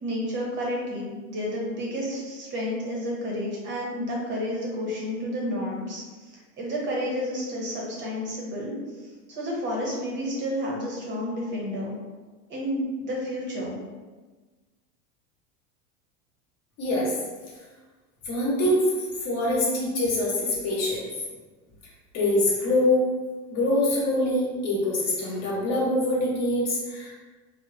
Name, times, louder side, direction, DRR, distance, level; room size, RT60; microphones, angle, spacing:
voice 1, 0.0-8.8 9.3-12.0 12.5-13.8, equal, 30° right, -3 dB, 0.8 m, -31 dB
voice 2, 16.8-17.2 18.2-18.8 19.2-21.1 22.1-23.1 23.5-27.1, left 1 dB, 40° left, -4 dB, 1.0 m, -24 dB
3.0 x 2.1 x 2.5 m, 1.3 s
supercardioid pair, 130°, 38 cm